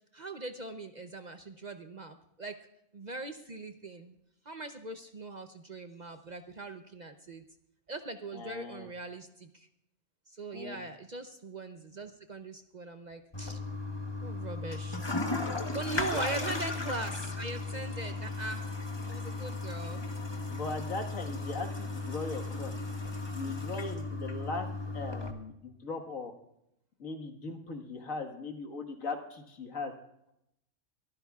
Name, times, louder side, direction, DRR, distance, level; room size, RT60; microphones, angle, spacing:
voice 1, 0.1-2.6 2.9-4.2 4.5-7.4 7.9-9.7 10.3-13.6 14.2-15.2 15.7-18.7 19.0-20.1, right 2 dB, 40° right, 7 dB, 0.7 m, -40 dB
voice 2, 8.3-8.9 10.5-10.8 16.0-16.4 20.5-22.7 23.3-24.7 24.9-26.3 27.0-29.9, left 3 dB, 80° left, 4 dB, 2.0 m, -39 dB
Toilet flush, 13.3-25.3, left 3 dB, 20° left, 1.1 m, -36 dB
23.5 x 14.5 x 2.4 m, 0.81 s
omnidirectional pair, 1.4 m